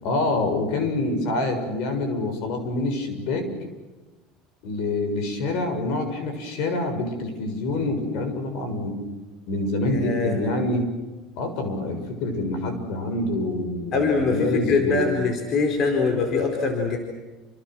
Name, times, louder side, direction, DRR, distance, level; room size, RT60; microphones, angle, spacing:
voice 1, 0.0-3.5 4.6-9.0 9.5-10.9 11.4-15.1, left 2 dB, 65° left, 7 dB, 6.9 m, -26 dB
voice 2, 9.8-10.4 13.9-17.0, left 4 dB, 45° left, 3 dB, 4.7 m, -23 dB
29.5 x 27.5 x 6.4 m, 1.2 s
cardioid pair, 135°, 0 cm